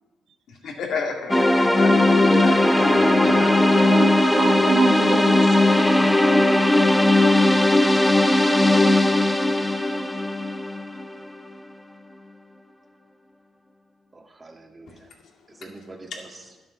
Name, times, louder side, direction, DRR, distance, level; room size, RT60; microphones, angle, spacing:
voice 1, 0.6-3.5, left 4 dB, 70° left, 1 dB, 2.1 m, -28 dB
sound 1, 1.3-11.3, left 1 dB, 10° left, 0.8 m, -18 dB
voice 2, 3.7-5.7, right 8 dB, 75° right, 10 dB, 0.7 m, -28 dB
voice 3, 14.1-15.1 15.5-16.5, right 2 dB, 25° right, 3 dB, 1.7 m, -45 dB
11.0 x 7.4 x 6.2 m, 1.1 s
cardioid pair, 90°, 0 cm